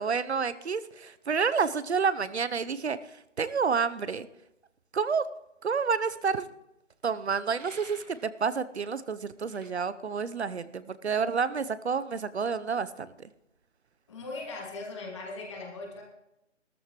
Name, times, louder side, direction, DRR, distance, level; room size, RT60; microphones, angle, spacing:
voice 1, 0.0-4.3 4.9-5.3 5.6-6.5 7.0-13.3, right 5 dB, 60° right, 15 dB, 0.8 m, -29 dB
sound 1, 7.5-8.3 9.5-9.7, right 3 dB, 80° right, 1.9 m, -49 dB
voice 2, 14.1-16.0, left 3 dB, 25° left, -1 dB, 2.5 m, -39 dB
17.0 x 13.5 x 3.1 m, 0.89 s
figure-of-eight pair, 165°, 37 cm